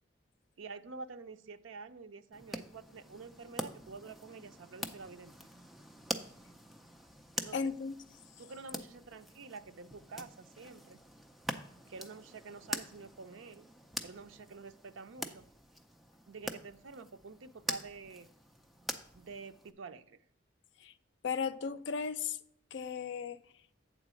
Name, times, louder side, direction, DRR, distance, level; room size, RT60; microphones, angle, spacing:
voice 1, 0.6-5.3 7.4-7.7 8.4-11.0 11.9-13.7 14.0-15.5 16.3-18.3 19.1-20.2, right 4 dB, 80° right, 0.5 m, -48 dB
sound 1, 2.3-19.7, equal, ahead, 0.5 m, -45 dB
voice 2, 7.5-8.0 20.8-20.9 21.2-22.4 22.7-23.4, left 6 dB, 65° left, 0.4 m, -35 dB
8.1 x 3.9 x 6.1 m
head